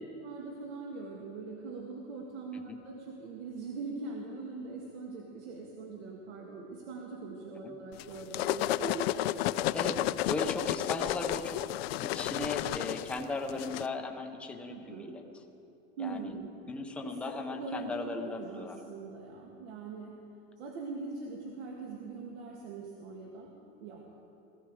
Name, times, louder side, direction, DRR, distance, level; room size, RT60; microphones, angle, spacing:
voice 1, 0.1-9.0 14.7-15.2 16.0-16.5 17.0-20.2 20.6-23.5 23.8-24.0, right 4 dB, 85° right, -1 dB, 2.0 m, -42 dB
sound 1, 8.0-13.9, left 14 dB, 70° left, 0.5 m, -32 dB
voice 2, 9.7-11.6 12.0-15.2 16.0-16.3 16.7-18.8, left 3 dB, 5° left, 4 dB, 0.4 m, -37 dB
18.5 x 15.0 x 4.8 m, 2.7 s
supercardioid pair, 175°, 32 cm